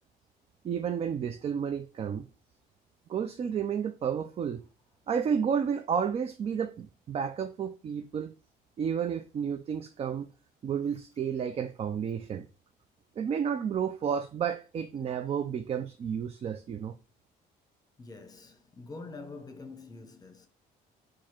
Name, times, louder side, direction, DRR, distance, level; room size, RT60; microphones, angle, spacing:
voice 1, 0.6-2.3 3.1-4.6 5.1-8.3 8.8-10.3 10.6-12.5 13.2-16.9, right 7 dB, 35° right, 0.4 m, -31 dB
voice 2, 18.0-20.5, left 3 dB, 20° left, 0.9 m, -45 dB
4.7 x 2.5 x 4.3 m
cardioid pair, 110°, 17 cm